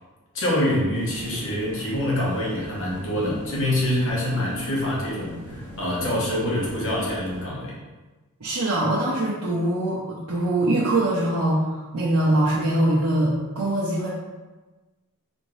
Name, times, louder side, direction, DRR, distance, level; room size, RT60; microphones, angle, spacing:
voice 1, 0.3-7.7, left 1 dB, 60° left, -4 dB, 1.1 m, -25 dB
sound 1, 0.9-7.4, right 1 dB, 10° left, 0.9 m, -41 dB
voice 2, 8.4-14.1, right 1 dB, 80° right, -8 dB, 0.7 m, -23 dB
4.2 x 2.6 x 3.2 m, 1.2 s
head